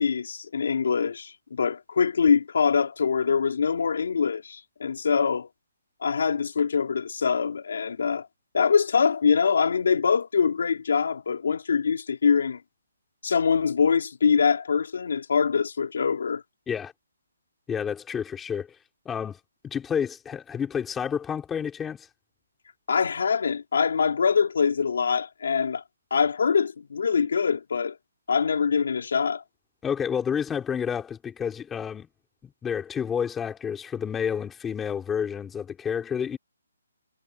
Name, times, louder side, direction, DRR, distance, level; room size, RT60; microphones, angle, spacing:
voice 1, 0.0-5.5 6.0-8.3 8.5-12.6 13.2-16.4 22.9-25.8 26.1-28.0 28.3-29.4, left 6 dB, 55° left, 3.7 m, -24 dB
voice 2, 17.7-18.7 19.1-19.4 19.6-22.1 29.8-32.1 32.4-36.4, left 7 dB, 5° left, 3.9 m, -30 dB
hypercardioid pair, 175°, 0 cm